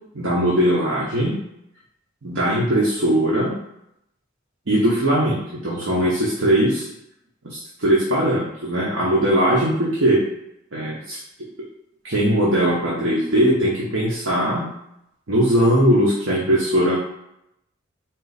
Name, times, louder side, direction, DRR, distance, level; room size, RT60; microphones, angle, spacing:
voice 1, 0.1-1.4 2.2-3.6 4.7-6.9 7.4-10.2 10.7-11.2 12.0-14.7 15.3-17.0, equal, 75° right, -6 dB, 0.9 m, -20 dB
3.9 x 2.4 x 4.0 m, 0.80 s
head